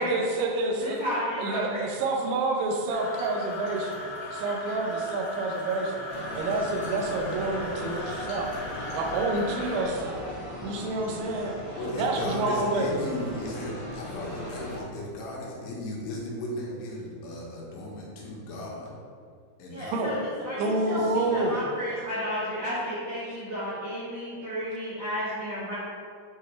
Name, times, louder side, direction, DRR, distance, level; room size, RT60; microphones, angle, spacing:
voice 1, 0.0-1.0 1.4-10.2 10.6-11.5 12.0-13.0 19.9-20.2 20.6-21.6 23.3-23.4, right 2 dB, 85° right, 1 dB, 3.2 m, -28 dB
voice 2, 0.8-1.9 19.7-25.7, equal, 65° right, -11 dB, 1.6 m, -32 dB
sound 1, 2.9-9.8, left 2 dB, 55° left, 2.7 m, -38 dB
sound 2, 6.1-14.8, left 1 dB, 90° left, 0.9 m, -39 dB
voice 3, 11.8-18.9 19.6-19.9 20.8-21.5, left 1 dB, 75° left, -4 dB, 3.2 m, -36 dB
9.6 x 4.6 x 3.3 m, 2.1 s
omnidirectional pair, 5.3 m